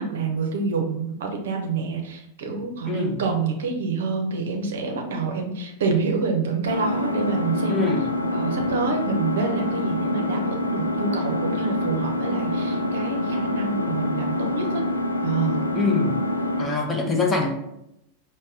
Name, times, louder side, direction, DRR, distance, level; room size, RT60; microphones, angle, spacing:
voice 1, 0.0-8.0 8.3-14.8 15.2-15.7, right 4 dB, 60° right, 3 dB, 0.7 m, -27 dB
voice 2, 2.8-3.2 7.7-8.0 15.8-16.2 16.6-17.5, left 3 dB, 15° left, 1 dB, 0.7 m, -24 dB
Engine, 6.7-16.7, left 1 dB, 85° left, 0.4 m, -26 dB
5.3 x 2.2 x 3.6 m, 0.83 s
figure-of-eight pair, 90°, 0 cm